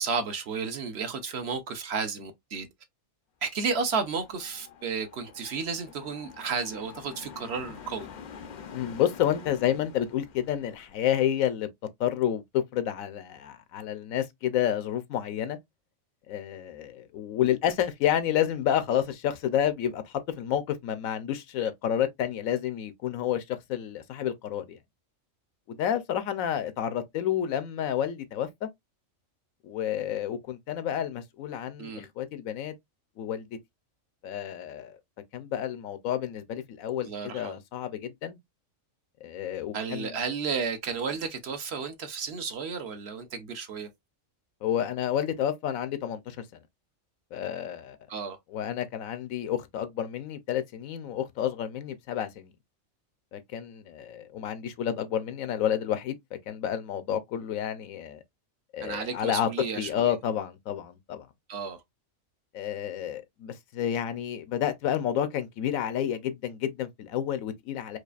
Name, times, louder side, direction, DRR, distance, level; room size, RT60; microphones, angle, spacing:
voice 1, 0.0-2.7 3.4-8.1 31.8-32.1 37.0-37.6 39.7-43.9 48.1-48.4 58.8-60.2 61.5-61.8, right 5 dB, 60° right, 0.8 m, -32 dB
sound 1, 3.6-11.0, left 6 dB, 65° left, 0.4 m, -47 dB
voice 2, 8.7-11.7 12.0-15.6 16.3-24.8 25.7-28.7 29.6-32.7 33.2-33.5 34.2-35.0 35.3-38.4 39.2-40.1 44.6-46.4 47.3-48.0 48.5-52.5 53.3-56.2 56.5-58.2 58.7-59.5 59.7-61.3 62.5-68.0, left 10 dB, 90° left, 1.1 m, -30 dB
4.8 x 2.4 x 2.4 m
omnidirectional pair, 1.4 m